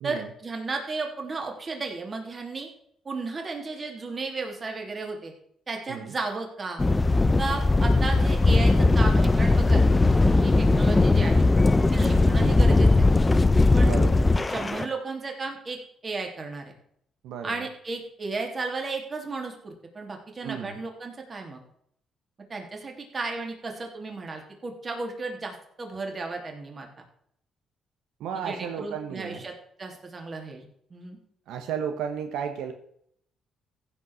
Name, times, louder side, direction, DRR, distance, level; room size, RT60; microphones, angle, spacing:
voice 1, 0.0-2.7 3.0-5.3 5.7-6.8 7.4-11.5 11.9-13.1 13.7-13.9 14.5-16.7 17.4-21.6 22.5-26.9 28.3-29.5 29.8-30.6 30.9-31.2, right 3 dB, 35° right, 2 dB, 3.0 m, -34 dB
sound 1, 6.8-14.8, left 2 dB, 20° left, 0.7 m, -19 dB
voice 2, 12.0-12.3 13.8-14.2 17.2-17.7 20.4-20.8 28.2-29.5 31.5-32.7, right 7 dB, 85° right, 5 dB, 1.1 m, -34 dB
15.0 x 5.3 x 6.3 m, 0.69 s
cardioid pair, 90°, 0 cm